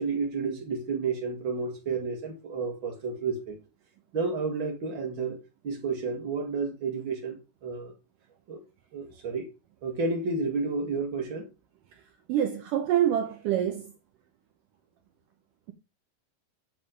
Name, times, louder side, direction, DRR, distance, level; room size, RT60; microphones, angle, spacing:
voice 1, 0.0-3.6 4.1-5.4 5.6-7.9 8.5-8.6 8.9-9.5 9.8-11.5, right 4 dB, 45° right, 1.8 m, -31 dB
voice 2, 12.3-13.9, right 10 dB, 75° right, 2.1 m, -26 dB
7.8 x 7.3 x 5.0 m
omnidirectional pair, 4.4 m